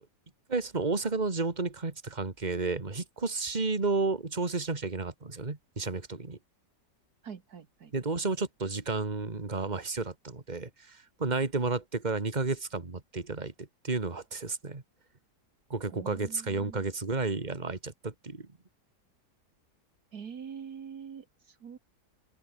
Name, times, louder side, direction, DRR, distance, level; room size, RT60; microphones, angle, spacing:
voice 1, 0.5-6.4 7.9-14.8 15.7-18.5, right 3 dB, 25° right, 2.3 m, -32 dB
voice 2, 7.2-7.9 15.9-16.9 20.1-21.8, right 7 dB, 65° right, 2.0 m, -44 dB
open air
omnidirectional pair, 1.8 m